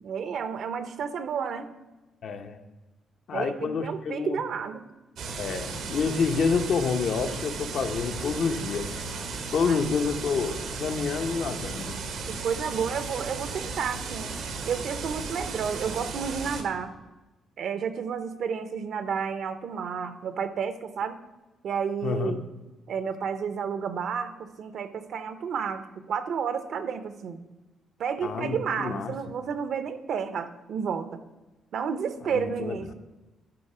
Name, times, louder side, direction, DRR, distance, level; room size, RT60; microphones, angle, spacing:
voice 1, 0.0-1.7 3.3-4.8 9.6-9.8 12.3-14.3 14.7-16.9 17.6-21.2 21.6-22.4 22.9-27.4 28.0-31.2 31.7-32.9, right 6 dB, 65° right, 11 dB, 0.7 m, -31 dB
voice 2, 2.2-2.6 3.3-4.4 5.4-9.0 9.5-12.0 22.0-22.4 28.2-29.1 32.3-32.8, left 5 dB, 60° left, 7 dB, 0.7 m, -28 dB
sound 1, 5.2-16.6, right 4 dB, 80° right, 1.1 m, -35 dB
11.5 x 4.0 x 5.5 m, 1.1 s
cardioid pair, 120°, 0 cm